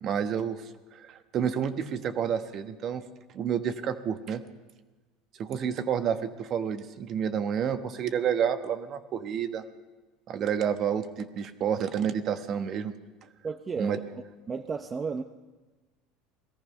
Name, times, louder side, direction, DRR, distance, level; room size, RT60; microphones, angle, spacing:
voice 1, 0.0-0.6 0.9-3.1 3.3-4.4 5.4-9.6 10.3-12.9 13.8-14.0, right 8 dB, 45° right, 9 dB, 1.1 m, -29 dB
voice 2, 13.4-14.1 14.5-15.2, right 5 dB, 25° right, 7 dB, 0.7 m, -33 dB
18.0 x 14.0 x 5.6 m, 1.2 s
supercardioid pair, 100°, 0 cm